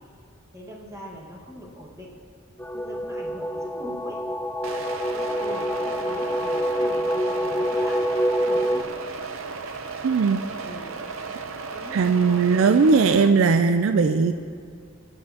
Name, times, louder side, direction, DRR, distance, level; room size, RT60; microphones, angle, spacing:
voice 1, 0.5-2.2 2.7-4.2 5.1-8.1 8.4-9.0 10.6-11.0 11.7-12.5, equal, 15° right, -3 dB, 1.6 m, -42 dB
sound 1, 2.6-8.8, equal, 10° left, 0.3 m, -26 dB
sound 2, 4.6-13.3, right 4 dB, 90° right, 0.8 m, -35 dB
voice 2, 10.0-10.4 11.9-14.3, right 4 dB, 75° right, 9 dB, 0.4 m, -19 dB
24.5 x 8.1 x 2.9 m, 2.2 s
head